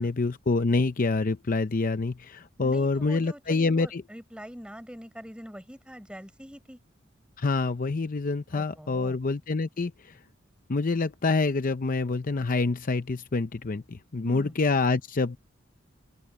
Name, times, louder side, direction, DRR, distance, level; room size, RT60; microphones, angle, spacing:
voice 1, 0.0-4.0 7.4-10.2 10.7-15.4, left 3 dB, 45° left, 0.6 m, -26 dB
voice 2, 2.6-6.8 8.5-9.2 14.2-14.5, equal, 5° right, 5.1 m, -44 dB
open air
head